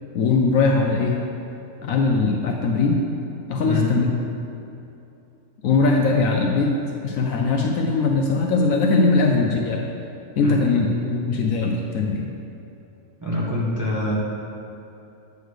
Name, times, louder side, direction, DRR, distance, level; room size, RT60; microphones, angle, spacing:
voice 1, 0.1-1.2 1.8-3.0 3.5-4.1 5.6-6.7 7.0-9.8 10.4-12.3, left 3 dB, 70° left, 1 dB, 0.9 m, -20 dB
voice 2, 3.6-3.9 10.4-10.6 13.2-14.2, left 2 dB, 15° right, -7 dB, 0.9 m, -25 dB
8.1 x 3.2 x 6.4 m, 2.7 s
omnidirectional pair, 1.6 m